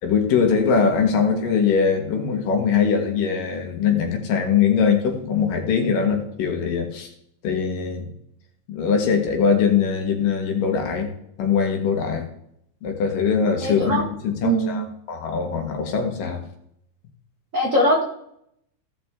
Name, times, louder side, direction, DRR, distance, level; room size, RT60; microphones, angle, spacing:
voice 1, 0.0-7.1 7.4-8.1 8.7-11.1 11.4-12.3 12.8-16.4, left 6 dB, 80° left, 3 dB, 3.3 m, -22 dB
voice 2, 13.6-14.0 14.4-14.8 17.5-18.0, right 1 dB, 85° right, 0 dB, 0.7 m, -21 dB
17.0 x 6.1 x 3.6 m, 0.72 s
omnidirectional pair, 3.9 m